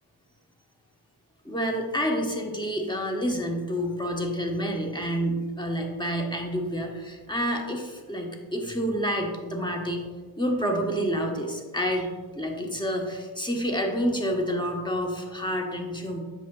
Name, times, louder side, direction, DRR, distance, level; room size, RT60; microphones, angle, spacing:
voice 1, 1.4-10.1 10.4-16.2, equal, 10° left, 1 dB, 1.1 m, -28 dB
8.1 x 5.6 x 2.3 m, 1.4 s
cardioid pair, 40°, 50 cm